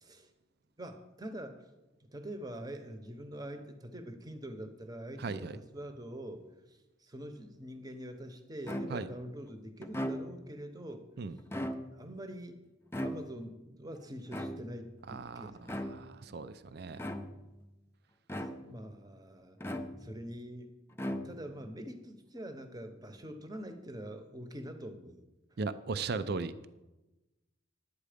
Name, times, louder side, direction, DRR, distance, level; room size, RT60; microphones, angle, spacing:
voice 1, 0.0-0.3 0.8-1.6 2.0-11.1 11.9-12.6 12.9-15.6 18.5-19.6 20.0-20.7 21.2-25.2, right 1 dB, 20° right, 7 dB, 0.9 m, -45 dB
voice 2, 5.2-5.6 8.9-9.1 11.2-11.3 15.1-17.0 25.6-26.7, right 4 dB, 50° right, 13 dB, 0.4 m, -37 dB
sound 1, 8.7-9.2 9.8-10.6 11.4-12.2 12.9-13.6 14.3-14.9 15.6-16.2 17.0-17.6 18.3-18.9 19.6-20.3 20.9-21.6, equal, 10° left, 0.5 m, -39 dB
11.0 x 8.4 x 5.1 m, 1.0 s
head